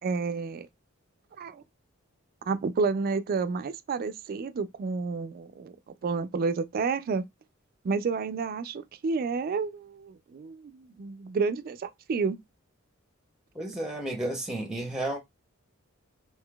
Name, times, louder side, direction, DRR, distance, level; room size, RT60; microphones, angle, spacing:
voice 1, 0.0-0.7 1.4-1.6 2.5-5.7 6.0-7.2 7.8-12.4, right 4 dB, 45° right, 0.3 m, -30 dB
voice 2, 13.5-15.2, right 1 dB, 5° right, 0.6 m, -32 dB
3.6 x 2.7 x 2.2 m
head